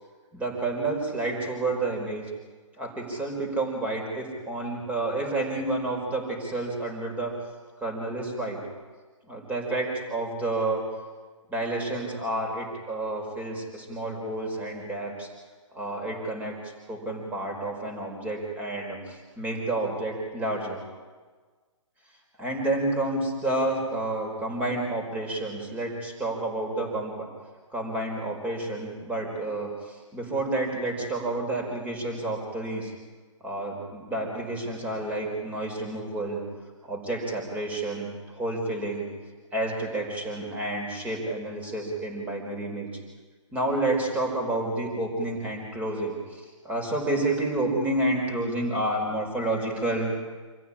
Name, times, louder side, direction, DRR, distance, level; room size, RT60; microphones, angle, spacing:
voice 1, 0.3-2.2 2.8-7.4 7.8-8.6 9.3-10.8 11.5-15.3 15.7-20.8 22.4-27.3 27.7-32.9 33.4-36.4 36.8-39.1 39.5-42.9 43.5-50.3, right 2 dB, 10° right, 1 dB, 4.9 m, -30 dB
26.0 x 15.0 x 9.9 m, 1.4 s
figure-of-eight pair, 135°, 16 cm